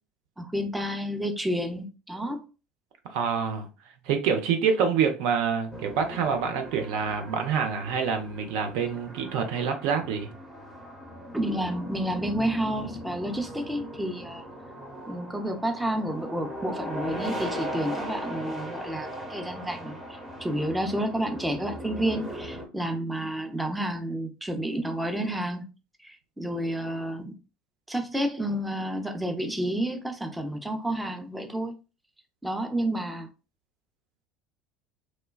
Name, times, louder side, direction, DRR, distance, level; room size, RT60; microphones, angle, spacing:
voice 1, 0.4-2.4 11.3-14.4 15.1-20.0 20.4-25.7 26.0-27.3 27.9-31.7 32.4-33.3, right 1 dB, 5° right, 0.5 m, -30 dB
voice 2, 3.0-3.7 4.1-10.3, right 6 dB, 65° right, 0.5 m, -26 dB
sound 1, 5.7-22.7, equal, 25° right, 1.0 m, -38 dB
3.1 x 2.2 x 2.3 m
hypercardioid pair, 70°, 0 cm